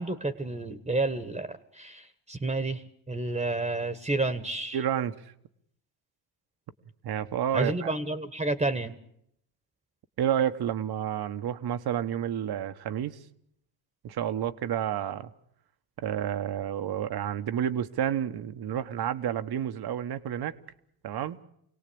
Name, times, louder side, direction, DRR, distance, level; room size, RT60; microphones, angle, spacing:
voice 1, 0.0-4.8 7.5-8.9, right 2 dB, 15° right, 11 dB, 1.5 m, -30 dB
voice 2, 4.7-5.1 7.0-7.9 10.2-13.2 14.0-15.3 16.0-20.5 21.0-21.4, right 10 dB, 55° right, 9 dB, 1.3 m, -30 dB
26.0 x 18.0 x 8.7 m, 0.74 s
supercardioid pair, 75°, 45 cm